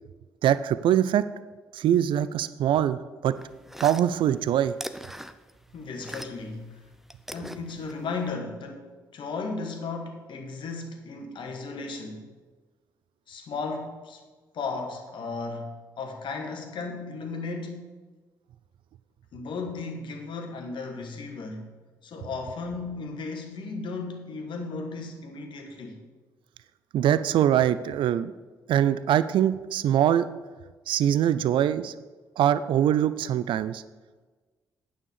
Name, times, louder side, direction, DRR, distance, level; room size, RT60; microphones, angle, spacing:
voice 1, 0.4-1.2 1.7-3.0 3.2-3.3 3.8-4.7 26.9-28.3 28.7-30.3 30.9-31.9 32.4-33.8, right 10 dB, 60° right, 14 dB, 0.4 m, -23 dB
sound 1, 3.3-6.6 6.8-8.3, equal, 5° right, 0.6 m, -41 dB
voice 2, 5.7-6.8 7.3-12.3 13.3-14.2 14.5-17.9 19.3-21.7 22.0-26.0, left 4 dB, 55° left, 3 dB, 1.7 m, -35 dB
9.3 x 5.7 x 6.7 m, 1.3 s
hypercardioid pair, 45°, 10 cm